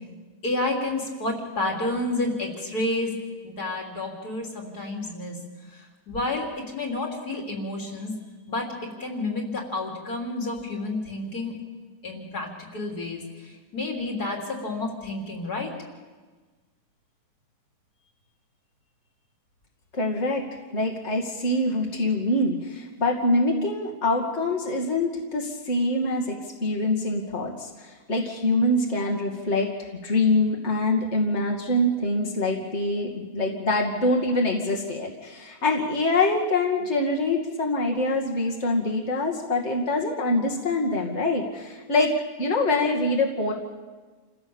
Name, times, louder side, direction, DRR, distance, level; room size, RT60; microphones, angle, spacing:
voice 1, 0.4-3.1 3.4-5.4 5.7-5.8 6.1-6.5 6.7-8.1 8.5-8.7 9.0-11.6 12.0-15.7, left 2 dB, 85° left, 1 dB, 3.9 m, -30 dB
voice 2, 19.9-20.4 20.7-26.4 26.6-42.1 42.4-43.5, left 2 dB, 45° left, -1 dB, 2.7 m, -25 dB
28.5 x 16.0 x 7.1 m, 1.4 s
omnidirectional pair, 1.6 m